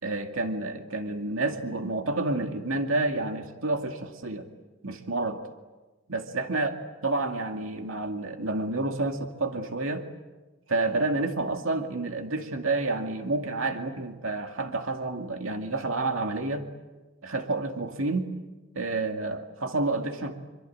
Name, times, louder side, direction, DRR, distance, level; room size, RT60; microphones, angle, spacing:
voice 1, 0.0-4.5 4.8-5.4 6.1-6.7 7.0-10.1 10.7-16.7 17.2-18.3 18.8-20.4, right 2 dB, 90° right, 4 dB, 2.3 m, -29 dB
27.0 x 24.5 x 8.7 m, 1.2 s
head